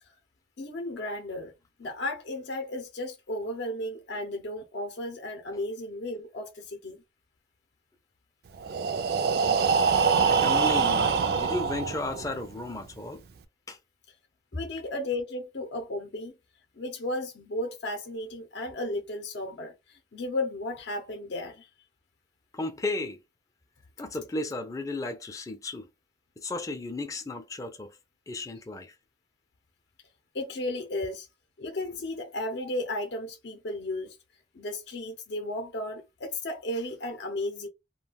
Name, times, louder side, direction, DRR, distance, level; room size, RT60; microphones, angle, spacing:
voice 1, 0.6-1.5 1.8-7.0 14.5-16.3 16.8-21.7 30.3-31.3 31.6-34.2 34.5-37.7, left 1 dB, 70° left, 0.6 m, -34 dB
Breathing, 8.6-12.5, right 5 dB, 55° right, 0.3 m, -24 dB
voice 2, 10.3-13.2 13.7-13.8 22.5-23.2 24.0-25.9 26.4-27.9 28.3-28.9, left 2 dB, 20° left, 0.4 m, -34 dB
2.3 x 2.2 x 3.4 m
head